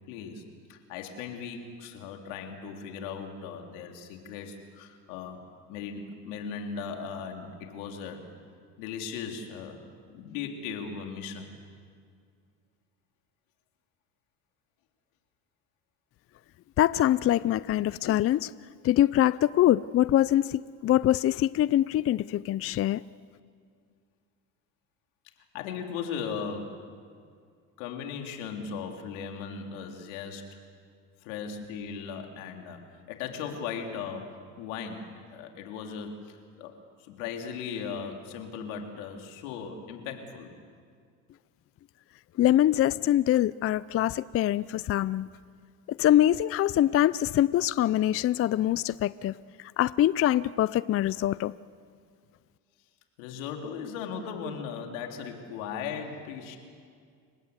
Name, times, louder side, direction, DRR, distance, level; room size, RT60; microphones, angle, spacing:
voice 1, 0.1-0.4 0.7-5.4 5.7-8.3 8.8-9.8 10.1-11.5 25.5-26.8 27.8-30.6 31.2-36.7 37.0-40.5 53.2-56.6, left 6 dB, 80° left, 3 dB, 3.5 m, -37 dB
voice 2, 16.8-18.5 18.8-23.0 42.4-45.3 45.9-49.4 49.8-51.5, left 12 dB, 35° left, 18 dB, 0.5 m, -24 dB
29.5 x 17.5 x 8.2 m, 2.2 s
supercardioid pair, 90°, 40 cm